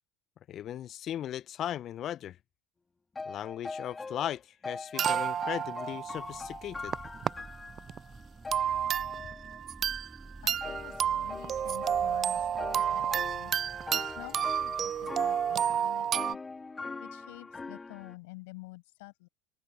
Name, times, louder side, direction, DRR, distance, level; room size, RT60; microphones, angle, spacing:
voice 1, 0.5-2.4 3.3-6.9, left 11 dB, 45° left, 0.8 m, -37 dB
sound 1, 3.1-4.4 4.6-8.1 8.4-9.6 10.6-18.1, left 4 dB, 20° left, 3.3 m, -42 dB
sound 2, 5.0-7.3 7.8-8.0 8.5-10.2 10.5-16.3, right 9 dB, 40° right, 0.3 m, -31 dB
sound 3, 6.0-15.9, right 2 dB, 15° right, 4.9 m, -51 dB
voice 2, 8.7-9.0 10.2-13.5 13.9-16.4 17.0-19.3, left 25 dB, 70° left, 7.2 m, -49 dB
hypercardioid pair, 75°, 0 cm